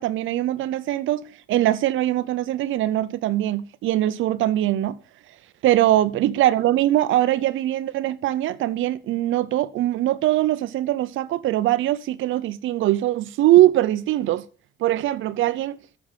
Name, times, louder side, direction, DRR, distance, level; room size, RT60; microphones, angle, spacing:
voice 1, 0.0-5.0 5.6-14.4 14.8-15.8, right 14 dB, 80° right, 0.6 m, -22 dB
8.6 x 7.1 x 7.3 m
cardioid pair, 90°, 20 cm